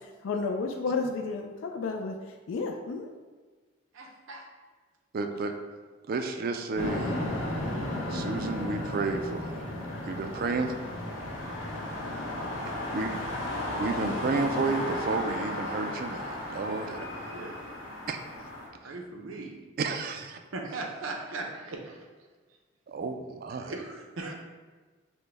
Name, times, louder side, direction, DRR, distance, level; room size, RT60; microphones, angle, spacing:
voice 1, 0.2-2.1 2.5-3.1, left 4 dB, 70° left, 3 dB, 0.3 m, -31 dB
voice 2, 3.9-4.5 11.3-11.5 12.8-13.0 13.9-14.0 16.8-17.6 18.8-19.5 20.5-22.1 23.6-24.3, right 3 dB, 85° right, 1 dB, 0.7 m, -39 dB
voice 3, 5.1-5.5 6.1-7.2 8.1-9.8 10.0-10.8 12.6-13.2 13.8-17.1 18.1-18.2 18.8-18.9 19.8-20.4 22.9-23.8, right 4 dB, 45° right, 6 dB, 0.3 m, -31 dB
sound 1, 6.7-18.7, left 1 dB, 90° left, 1.4 m, -34 dB
6.0 x 2.1 x 3.3 m, 1.4 s
head